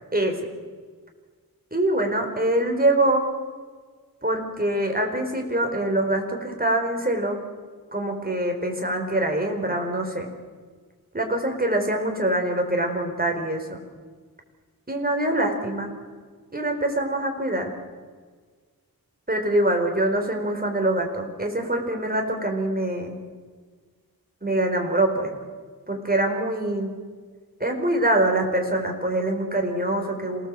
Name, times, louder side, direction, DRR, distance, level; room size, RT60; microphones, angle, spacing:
voice 1, 1.7-3.3 4.2-7.4 7.9-10.3 11.1-13.8 14.9-15.9 16.5-17.7 19.3-23.2 24.4-25.3 25.9-27.0 27.6-30.5, right 1 dB, 25° right, 3 dB, 4.7 m, -24 dB
27.0 x 18.5 x 7.8 m, 1.5 s
wide cardioid pair, 80°, 37 cm